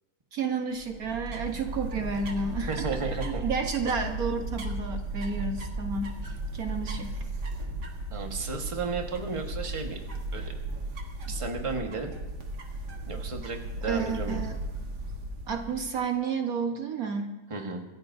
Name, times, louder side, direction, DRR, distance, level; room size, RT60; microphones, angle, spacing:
voice 1, 0.3-2.9 3.2-7.1 13.9-14.6 15.5-17.3, right 5 dB, 65° right, 4 dB, 1.5 m, -31 dB
sound 1, 0.8-16.0, right 2 dB, 80° right, 2.1 m, -35 dB
voice 2, 2.7-3.4 8.1-10.0 10.3-10.5 11.3-12.1 13.1-14.4 17.5-17.8, right 4 dB, 20° right, 2 dB, 1.4 m, -33 dB
26.0 x 15.0 x 2.7 m, 1.1 s
omnidirectional pair, 1.7 m